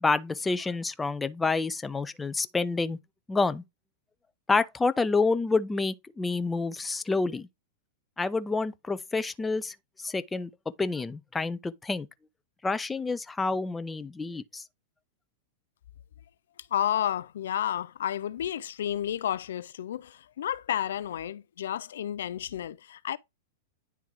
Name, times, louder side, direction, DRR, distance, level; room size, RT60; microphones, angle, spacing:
voice 1, 0.0-3.0 3.3-3.6 4.5-7.5 8.2-10.5 10.8-12.1 12.6-14.6, left 3 dB, 10° left, 0.5 m, -28 dB
voice 2, 16.7-23.2, left 10 dB, 75° left, 0.4 m, -31 dB
10.0 x 3.5 x 3.0 m
hypercardioid pair, 110°, 0 cm